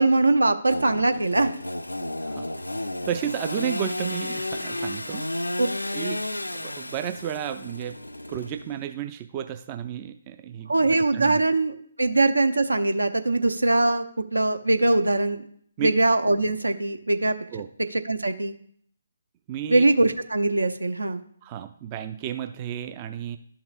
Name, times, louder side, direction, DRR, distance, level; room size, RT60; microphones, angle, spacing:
voice 1, 0.0-1.5 5.6-5.7 10.7-14.0 14.3-15.4 15.8-17.3 17.9-18.5 19.7-21.2, right 2 dB, 75° right, 10 dB, 0.6 m, -22 dB
Engine / Sawing, 0.7-8.9, left 1 dB, 80° left, 0.4 m, -32 dB
voice 2, 2.8-5.3 5.9-6.3 6.5-11.4 15.8-15.9 17.5-17.7 19.5-19.8 21.4-23.4, right 10 dB, 25° right, 9 dB, 0.3 m, -33 dB
12.0 x 5.8 x 2.4 m, 0.63 s
figure-of-eight pair, 140°, 0 cm